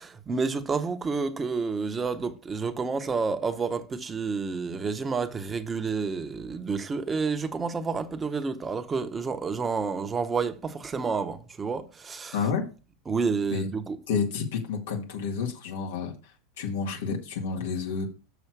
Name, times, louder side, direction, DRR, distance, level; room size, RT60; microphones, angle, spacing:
voice 1, 0.0-12.4 13.1-14.0, right 4 dB, 15° right, 1.0 m, -29 dB
voice 2, 12.3-12.6 13.5-13.6 14.1-16.1 16.6-18.1, left 5 dB, 85° left, 1.9 m, -29 dB
7.0 x 6.3 x 4.7 m
supercardioid pair, 135°, 0 cm